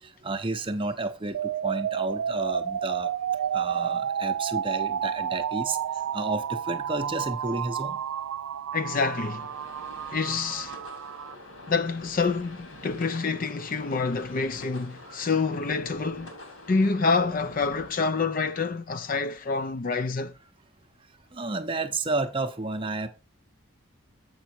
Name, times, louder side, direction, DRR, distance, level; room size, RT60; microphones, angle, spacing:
voice 1, 0.0-3.1 3.5-5.8 6.1-8.0 10.2-10.4 15.1-15.3 21.3-23.1, right 3 dB, 25° right, 0.7 m, -31 dB
sound 1, 1.3-11.3, right 8 dB, 80° right, 0.4 m, -31 dB
voice 2, 8.7-9.5 10.1-10.8 11.7-16.3 16.7-20.3, left 4 dB, 40° left, 0.5 m, -27 dB
sound 2, 9.1-17.9, left 2 dB, 65° left, 2.3 m, -46 dB
7.9 x 5.6 x 4.4 m
head